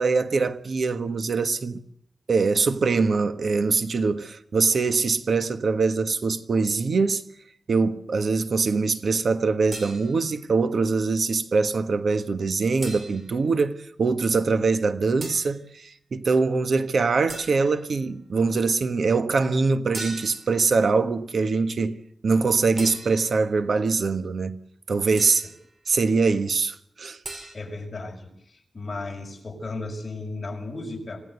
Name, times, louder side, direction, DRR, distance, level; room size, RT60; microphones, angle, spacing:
voice 1, 0.0-1.8 2.3-7.2 7.7-22.0 22.2-24.6 24.9-25.5 25.9-27.2, right 4 dB, 65° right, 1.4 m, -23 dB
sound 1, 9.7-10.4 12.8-13.5 15.2-15.6 17.3-17.9 19.9-20.6 22.8-23.5 25.2-25.6 27.2-27.6, right 2 dB, 50° right, 4.8 m, -39 dB
voice 2, 27.5-31.2, left 2 dB, 35° left, 6.0 m, -35 dB
26.5 x 17.0 x 8.2 m
wide cardioid pair, 160°, 0 cm